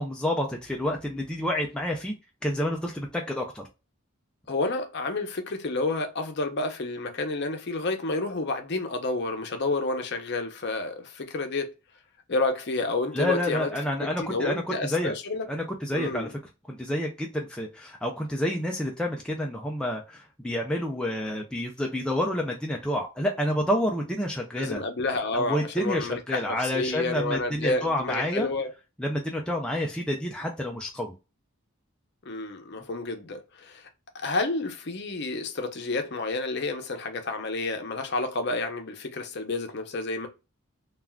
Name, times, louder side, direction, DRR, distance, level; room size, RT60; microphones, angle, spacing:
voice 1, 0.0-2.1 2.4-3.7 13.1-15.1 15.5-16.3 16.7-24.8 25.3-28.5 29.0-31.1, left 1 dB, 5° left, 0.3 m, -29 dB
voice 2, 4.5-11.7 12.3-13.7 14.0-15.5 15.9-16.3 24.6-28.7 32.3-33.9 34.1-40.3, left 3 dB, 50° left, 0.6 m, -30 dB
3.5 x 2.4 x 2.2 m
head